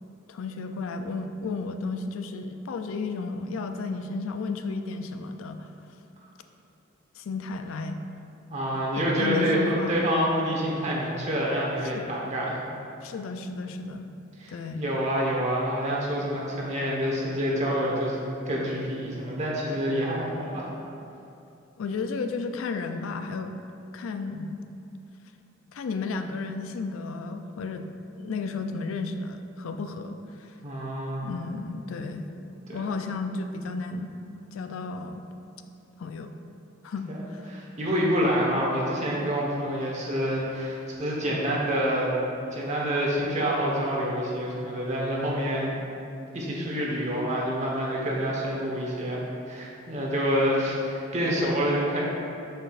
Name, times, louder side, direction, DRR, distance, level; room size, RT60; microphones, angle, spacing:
voice 1, 0.3-5.7 7.2-8.0 8.9-10.1 11.9-12.1 13.0-14.1 14.5-14.9 21.8-23.5 23.9-24.6 25.7-27.9 28.2-30.5 31.2-32.3 32.7-34.1 34.5-35.2 36.0-36.3 36.8-37.4 37.9-38.1, left 3 dB, 85° left, 7 dB, 0.4 m, -33 dB
voice 2, 8.5-12.6 14.4-20.7 30.6-31.3 32.7-32.9 37.1-37.2 37.5-42.1 42.5-45.8 46.3-52.0, equal, 35° right, -4 dB, 1.1 m, -27 dB
6.8 x 5.8 x 2.4 m, 2.7 s
head